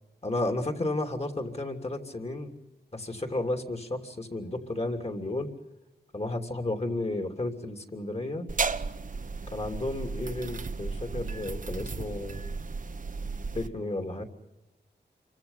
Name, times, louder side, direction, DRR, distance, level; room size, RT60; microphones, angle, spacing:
voice 1, 0.2-2.6 2.9-5.5 6.1-8.5 9.5-12.5 13.5-14.2, left 2 dB, 35° left, 6 dB, 3.2 m, -32 dB
sound 1, 8.5-13.7, right 4 dB, 50° right, 1.0 m, -34 dB
28.0 x 25.0 x 5.7 m, 0.97 s
wide cardioid pair, 85°, 18 cm